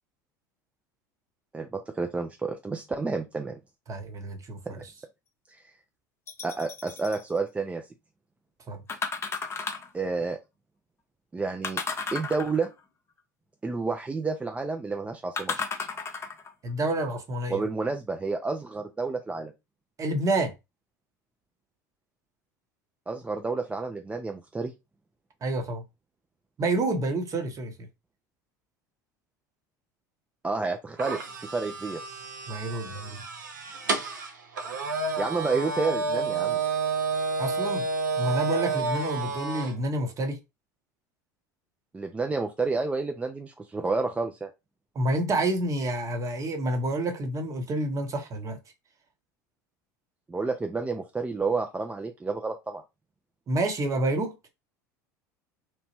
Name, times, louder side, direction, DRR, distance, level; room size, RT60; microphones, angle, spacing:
voice 1, 1.5-3.6 4.7-4.8 5.5-5.7 6.4-7.8 9.9-10.4 11.3-11.8 12.1-12.7 13.6-15.6 17.5-19.5 23.1-24.7 30.4-32.0 35.2-36.6 41.9-44.5 50.3-52.8, right 4 dB, 15° right, 0.3 m, -30 dB
voice 2, 3.9-4.8 8.7-8.8 16.6-17.6 20.0-20.5 25.4-25.8 26.6-27.7 32.5-33.2 37.4-37.9 38.2-40.4 44.9-48.6 53.5-54.4, right 1 dB, 35° right, 0.8 m, -28 dB
sound 1, 6.3-7.2 8.9-10.0 11.6-12.8 15.4-16.5 17.2-17.3, left 5 dB, 25° left, 0.6 m, -33 dB
sound 2, 31.0-39.7, right 4 dB, 85° right, 0.6 m, -30 dB
2.9 x 2.1 x 2.8 m
hypercardioid pair, 75°, 10 cm